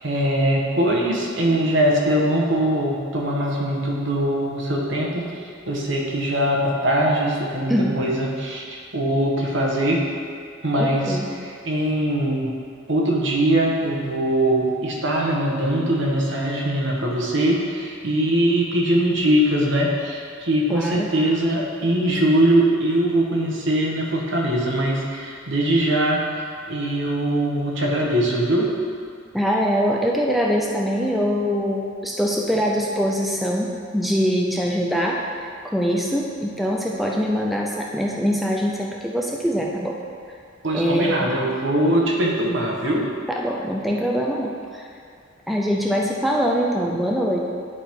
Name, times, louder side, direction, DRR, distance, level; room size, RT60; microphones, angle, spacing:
voice 1, 0.0-10.0 10.6-12.5 12.9-26.2 26.7-28.7 40.6-43.1, right 1 dB, 65° right, -2 dB, 1.2 m, -21 dB
voice 2, 7.7-8.0 10.8-11.3 20.7-21.1 29.3-40.0 40.7-41.3 43.3-44.9 45.5-47.4, equal, ahead, -2 dB, 0.4 m, -23 dB
10.0 x 3.6 x 4.4 m, 2.2 s
head